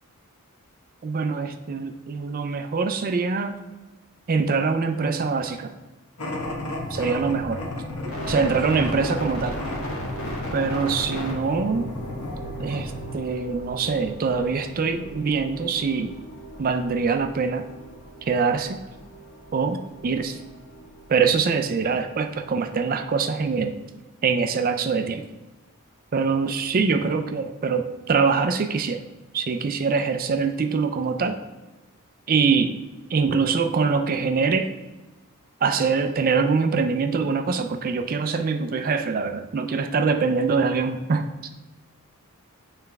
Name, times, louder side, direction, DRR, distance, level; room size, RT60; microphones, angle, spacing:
voice 1, 1.0-3.6 4.3-5.7 6.9-7.6 8.0-9.6 10.5-11.9 12.6-16.1 16.6-17.6 18.3-18.8 19.5-20.4 21.1-23.8 24.2-25.3 26.1-29.0 29.3-31.4 32.3-32.8 33.1-34.7 35.6-41.2, right 5 dB, 40° right, 6 dB, 0.4 m, -24 dB
sound 1, 6.2-13.2, left 1 dB, 85° left, 1.1 m, -33 dB
sound 2, 8.1-23.7, equal, 65° left, 1.6 m, -38 dB
8.8 x 3.2 x 3.5 m, 1.2 s
head